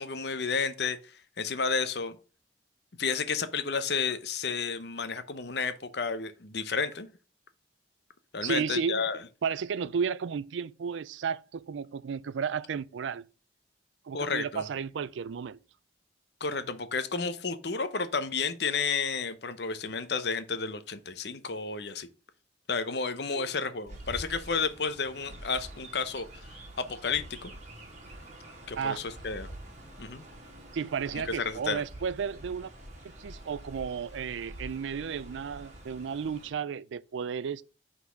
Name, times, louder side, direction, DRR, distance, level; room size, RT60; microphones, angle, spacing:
voice 1, 0.0-2.2 3.0-7.1 8.3-9.2 14.1-14.6 16.4-22.1 22.7-26.3 26.8-27.5 28.7-29.5 30.0-30.2 31.3-31.8, left 5 dB, 60° left, 0.8 m, -31 dB
voice 2, 8.4-9.0 9.4-13.2 14.1-15.6 23.3-23.5 28.8-29.0 30.7-32.7 33.2-37.6, right 6 dB, 75° right, 0.4 m, -33 dB
Chirp tweet, 23.9-36.5, right 1 dB, 40° right, 1.7 m, -46 dB
5.8 x 4.0 x 6.2 m
head